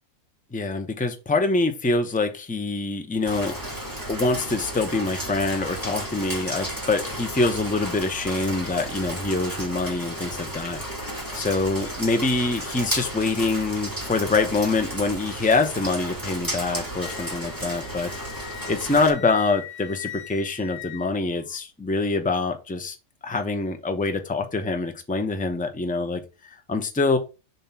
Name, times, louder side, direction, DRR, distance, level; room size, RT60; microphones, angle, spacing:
voice 1, 0.5-3.5 4.1-10.8 11.4-18.1 18.4-23.0 23.2-26.2 26.7-27.2, left 3 dB, 10° left, 6 dB, 0.4 m, -25 dB
Rain, 3.3-19.1, right 1 dB, 15° right, 2.6 m, -33 dB
Wind instrument woodwind instrument, 17.0-21.6, left 14 dB, 80° left, 1.5 m, -41 dB
7.1 x 2.8 x 5.7 m, 0.30 s
omnidirectional pair, 1.6 m